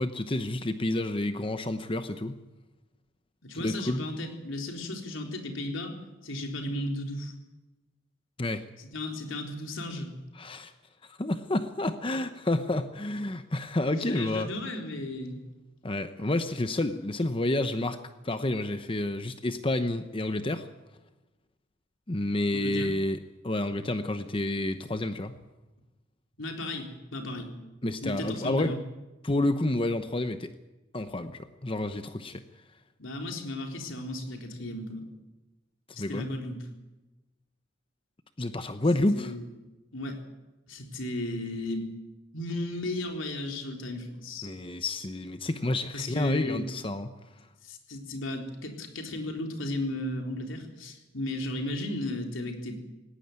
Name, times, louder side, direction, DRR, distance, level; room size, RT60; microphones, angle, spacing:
voice 1, 0.0-2.4 3.6-4.1 8.4-8.6 10.4-10.7 11.1-14.5 15.8-20.7 22.1-23.2 23.4-25.3 27.8-28.8 29.2-30.5 30.9-32.4 36.0-36.3 38.4-39.3 44.4-47.1, left 1 dB, 25° left, 9 dB, 0.9 m, -29 dB
voice 2, 3.4-6.0 6.2-7.3 8.8-10.1 13.9-15.4 22.5-22.9 26.4-27.5 28.0-28.8 33.0-35.1 35.9-36.7 39.1-39.5 39.9-40.2 40.7-41.9 42.3-44.5 45.9-46.7 47.6-52.8, left 1 dB, 85° left, 3 dB, 3.9 m, -35 dB
18.5 x 18.0 x 9.5 m, 1.1 s
head